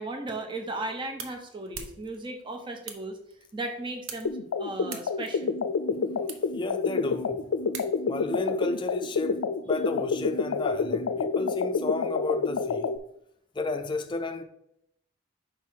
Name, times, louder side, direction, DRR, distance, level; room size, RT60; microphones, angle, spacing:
voice 1, 0.0-3.2 3.5-5.6, right 2 dB, 25° right, 0.7 m, -36 dB
sound 1, 0.5-8.3, right 5 dB, 85° right, 1.0 m, -46 dB
sound 2, 4.2-13.0, left 5 dB, 85° left, 0.4 m, -28 dB
voice 2, 6.5-7.5 8.1-12.9 13.5-14.4, left 2 dB, 25° left, 0.5 m, -32 dB
4.6 x 4.6 x 5.7 m
head